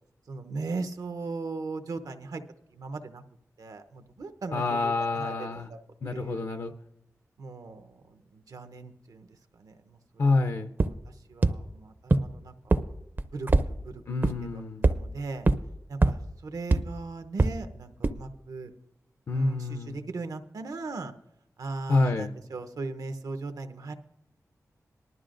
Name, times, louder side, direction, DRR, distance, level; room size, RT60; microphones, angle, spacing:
voice 1, 0.3-2.4 2.7-3.2 3.6-5.8 6.1-6.4 7.4-9.3 9.6-10.3 10.8-12.8 13.3-14.0 14.5-15.5 15.9-18.7 19.3-21.1 21.6-23.9, right 3 dB, 80° right, 8 dB, 0.8 m, -38 dB
voice 2, 4.5-5.7 6.0-6.7 10.2-10.7 14.1-14.8 19.3-20.0 21.9-22.3, left 3 dB, 60° left, 7 dB, 0.6 m, -27 dB
sound 1, 10.8-10.9 11.4-11.5 12.1-12.2 12.7-12.8 13.2-13.6 14.2-14.3 14.8-14.9 15.5-15.6 16.0-16.1 16.7-16.8 17.4-17.5 18.0-18.1, right 2 dB, 35° right, 0.5 m, -20 dB
19.5 x 12.0 x 2.5 m, 0.85 s
wide cardioid pair, 115°, 6 cm